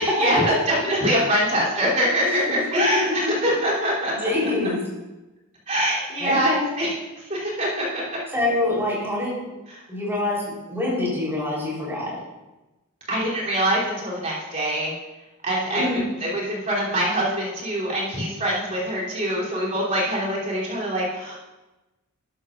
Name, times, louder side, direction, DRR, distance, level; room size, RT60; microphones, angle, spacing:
voice 1, 0.0-4.3 5.7-6.9 7.3-8.0 13.1-14.9 15.4-21.4, equal, 35° right, -7 dB, 3.3 m, -24 dB
voice 2, 2.2-2.8 3.4-3.5 4.1-4.8 6.2-6.7 8.3-9.4 9.9-12.1 15.7-16.0, left 2 dB, 10° right, -6 dB, 3.9 m, -26 dB
12.5 x 11.0 x 2.6 m, 1.1 s
head